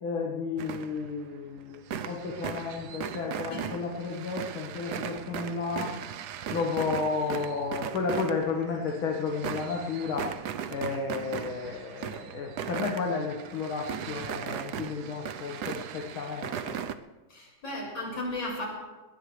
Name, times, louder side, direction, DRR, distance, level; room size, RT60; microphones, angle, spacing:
voice 1, 0.0-6.0 6.5-10.3 10.7-16.8, left 4 dB, 90° left, -1 dB, 2.4 m, -32 dB
sound 1, 0.6-1.3 1.6-16.9, right 8 dB, 65° right, 1.1 m, -38 dB
voice 2, 17.3-18.7, left 1 dB, 75° left, -2 dB, 6.1 m, -34 dB
20.5 x 19.5 x 3.3 m, 1.2 s
omnidirectional pair, 2.2 m